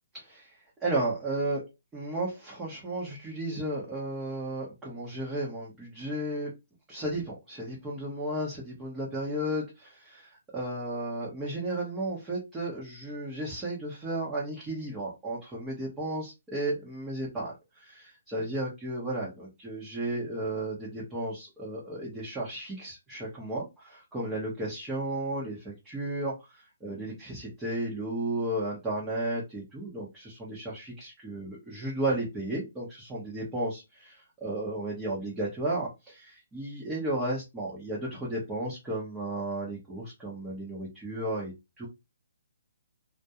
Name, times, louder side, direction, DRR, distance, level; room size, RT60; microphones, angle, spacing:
voice 1, 0.1-1.6 1.9-6.5 6.9-41.9, right 1 dB, 10° right, -6 dB, 0.7 m, -34 dB
2.3 x 2.1 x 2.8 m, 0.23 s
hypercardioid pair, 155°, 0 cm